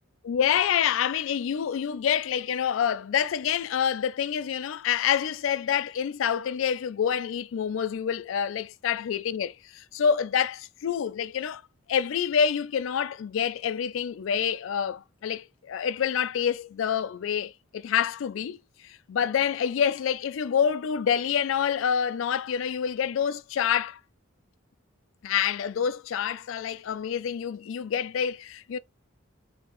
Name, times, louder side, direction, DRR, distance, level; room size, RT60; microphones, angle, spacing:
voice 1, 0.2-11.6 11.9-18.6 18.8-24.0 25.2-28.8, left 8 dB, 75° left, 0.3 m, -27 dB
3.0 x 2.8 x 3.7 m
head